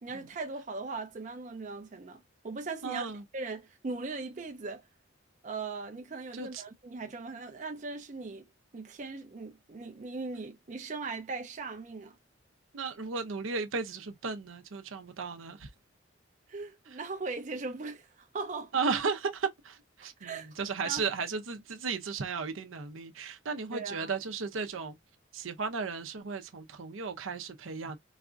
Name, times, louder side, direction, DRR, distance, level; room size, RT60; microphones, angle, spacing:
voice 1, 0.0-3.1 3.3-4.8 5.4-8.4 8.7-12.1 16.5-18.7 20.2-20.5 20.8-21.0 23.7-24.2, right 3 dB, 40° right, 0.5 m, -39 dB
voice 2, 2.8-3.2 6.3-6.6 12.7-15.7 16.9-17.0 18.7-25.0 25.3-28.0, right 5 dB, 80° right, 0.7 m, -35 dB
4.0 x 2.5 x 2.3 m
head